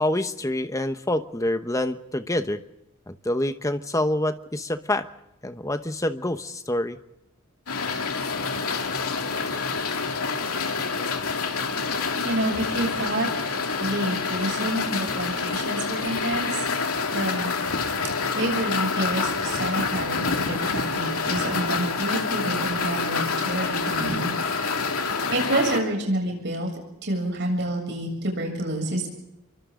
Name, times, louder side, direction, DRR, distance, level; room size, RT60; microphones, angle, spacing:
voice 1, 0.0-2.6 3.1-5.1 5.4-7.0, left 1 dB, 15° left, 10 dB, 1.0 m, -26 dB
sound 1, 7.7-25.8, left 4 dB, 90° left, 2.5 m, -27 dB
voice 2, 11.9-13.3 13.8-16.7 17.1-17.8 18.4-24.3 25.3-26.7 27.0-29.1, right 1 dB, 55° right, 2 dB, 7.4 m, -28 dB
28.0 x 24.0 x 3.9 m, 0.90 s
head